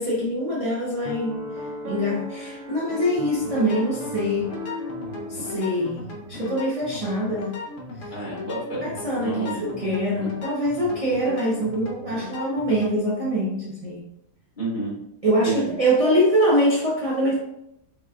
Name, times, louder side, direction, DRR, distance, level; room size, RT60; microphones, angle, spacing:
voice 1, 0.0-4.5 5.3-7.6 8.0-8.1 8.8-14.1 15.2-17.4, equal, 35° right, -5 dB, 0.6 m, -24 dB
Piano, 1.1-6.4, equal, 65° right, 1.0 m, -36 dB
sound 1, 3.4-13.0, left 2 dB, 60° left, 1.1 m, -37 dB
voice 2, 8.1-8.9 9.1-9.7 10.2-10.3 14.6-15.0 15.4-15.7, right 2 dB, 35° left, -8 dB, 1.7 m, -30 dB
5.2 x 3.0 x 2.4 m, 0.82 s
omnidirectional pair, 1.5 m